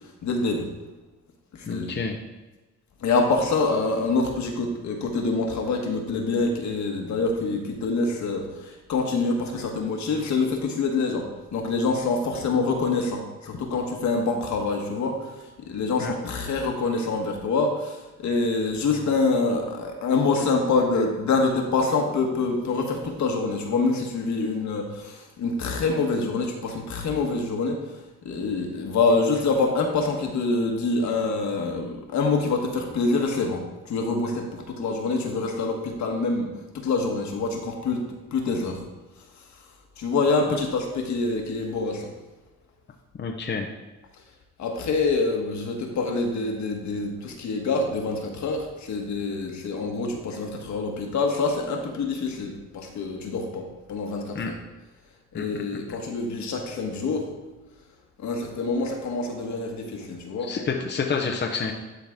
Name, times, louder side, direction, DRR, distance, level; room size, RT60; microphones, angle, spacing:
voice 1, 0.2-0.7 1.5-2.0 3.0-28.0 28.2-36.5 36.7-38.0 38.3-38.8 40.0-42.1 44.6-54.5 55.3-57.3 58.2-60.5, left 3 dB, 70° left, 2 dB, 1.5 m, -26 dB
voice 2, 1.6-2.2 16.0-16.1 43.2-43.7 54.3-54.5 55.3-55.4 60.4-61.7, left 5 dB, 35° left, 1 dB, 0.8 m, -28 dB
12.0 x 4.0 x 3.7 m, 1.1 s
cardioid pair, 90°, 30 cm